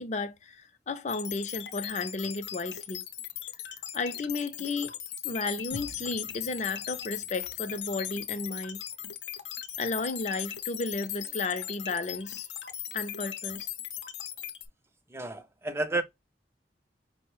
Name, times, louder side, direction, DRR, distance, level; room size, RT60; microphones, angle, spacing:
voice 1, 0.0-3.1 3.9-4.9 5.2-8.8 9.8-12.5 12.9-13.7, left 3 dB, 40° left, 0.5 m, -33 dB
sound 1, 1.1-14.7, left 11 dB, 85° left, 0.7 m, -38 dB
sound 2, 5.7-9.7, right 1 dB, 70° right, 0.7 m, -51 dB
voice 2, 15.1-16.0, right 2 dB, 15° right, 0.5 m, -31 dB
5.3 x 2.1 x 3.0 m
head